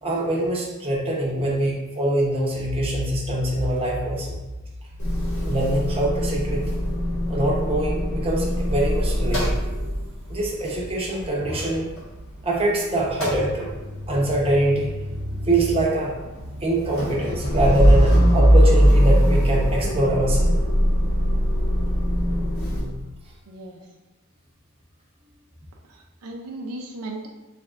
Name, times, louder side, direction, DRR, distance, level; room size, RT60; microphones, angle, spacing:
voice 1, 0.0-4.4 5.4-6.6 7.3-9.5 10.3-11.9 12.4-13.7 14.1-14.9 15.5-16.1 16.6-20.5 22.6-23.0, right 1 dB, 25° right, -4 dB, 0.8 m, -24 dB
Motor vehicle (road) / Engine starting / Idling, 5.0-12.7 13.0-22.8, equal, 65° left, 1.5 m, -22 dB
voice 2, 23.5-23.8 25.9-27.3, right 2 dB, 80° right, 0 dB, 0.5 m, -36 dB
5.0 x 3.2 x 2.4 m, 1.1 s
head